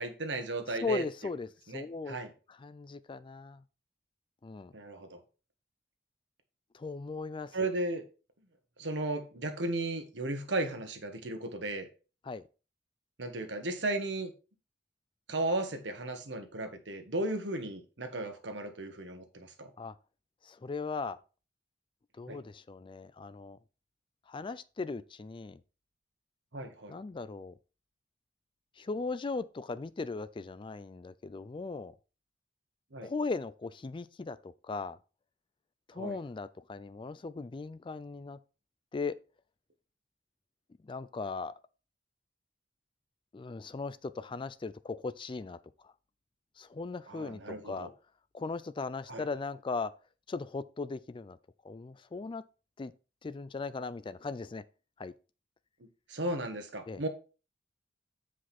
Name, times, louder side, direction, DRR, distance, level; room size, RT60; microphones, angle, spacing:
voice 1, 0.0-1.0 1.7-2.3 4.7-5.2 7.5-8.0 8.8-11.9 13.2-14.3 15.3-19.7 22.3-22.4 26.5-26.9 32.9-33.1 36.0-36.2 47.1-47.9 49.1-49.2 56.1-57.1, right 2 dB, 75° right, 1.4 m, -35 dB
voice 2, 0.7-2.2 2.5-3.6 4.4-4.7 6.7-7.7 12.2-12.4 19.8-20.0 20.4-21.2 22.2-23.6 24.3-25.6 26.9-27.5 28.8-31.9 33.0-35.0 35.9-38.4 38.9-39.2 40.8-41.5 43.3-45.6 45.8-45.9 46.6-47.9 48.3-49.9 50.3-51.4 51.6-52.4 52.8-52.9 53.2-54.6 55.0-55.1 56.9-57.0, left 4 dB, 30° left, 0.4 m, -38 dB
8.0 x 5.0 x 4.2 m
head